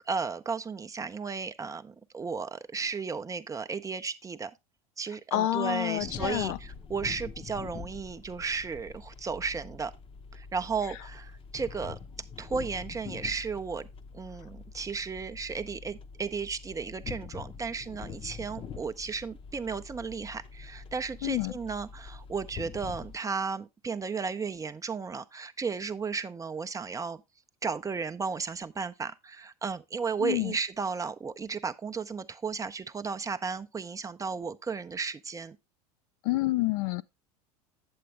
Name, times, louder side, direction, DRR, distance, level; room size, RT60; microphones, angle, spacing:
voice 1, 0.0-4.5 5.0-9.9 10.3-12.0 12.4-13.9 14.1-27.2 27.6-35.6, right 5 dB, 15° right, 0.6 m, -34 dB
voice 2, 5.3-6.6 21.2-21.5 30.2-30.5 36.2-37.0, left 16 dB, 60° left, 0.4 m, -28 dB
sound 1, 6.0-23.2, left 6 dB, 30° left, 0.8 m, -44 dB
8.6 x 7.6 x 3.1 m
hypercardioid pair, 80°, 20 cm